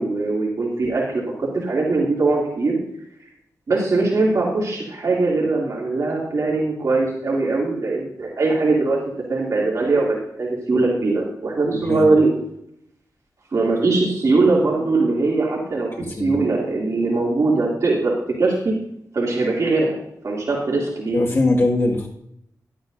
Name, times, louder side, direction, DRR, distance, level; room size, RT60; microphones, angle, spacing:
voice 1, 0.0-2.8 3.7-9.0 9.3-12.3 13.5-18.7 19.1-20.0 20.2-21.2, right 3 dB, 55° right, -4 dB, 2.7 m, -21 dB
voice 2, 11.7-12.1 16.0-16.3 21.1-22.1, left 2 dB, 40° left, -1 dB, 1.9 m, -21 dB
12.0 x 11.0 x 2.6 m, 0.74 s
wide cardioid pair, 115°, 7 cm